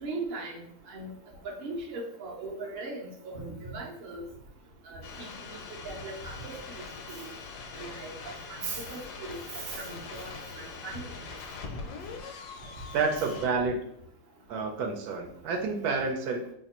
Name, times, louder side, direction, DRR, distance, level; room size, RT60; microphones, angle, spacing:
voice 1, 0.0-1.1 1.4-4.2 4.9-5.3 5.8-6.8 7.1-7.2 7.8-11.0, right 3 dB, 50° right, -2 dB, 0.7 m, -39 dB
sound 1, 5.0-13.5, left 4 dB, 80° left, 1.1 m, -42 dB
voice 2, 12.9-13.8 14.5-16.4, right 4 dB, 75° right, 2 dB, 1.1 m, -29 dB
2.9 x 2.4 x 4.1 m, 0.71 s
omnidirectional pair, 1.7 m